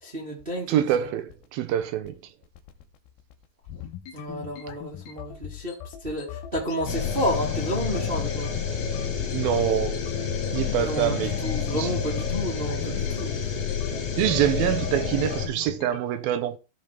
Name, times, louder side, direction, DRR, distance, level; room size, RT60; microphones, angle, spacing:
voice 1, 0.0-1.1 4.1-8.5 10.8-13.3, equal, 20° right, 1.6 m, -31 dB
sound 1, 0.7-16.0, left 10 dB, 80° left, 2.7 m, -40 dB
voice 2, 0.7-2.2 9.3-10.0 10.5-11.4 11.7-11.9 14.2-16.6, right 11 dB, 75° right, 2.6 m, -25 dB
sound 2, 6.9-15.5, left 6 dB, 50° left, 2.6 m, -29 dB
15.0 x 5.1 x 3.5 m
omnidirectional pair, 4.4 m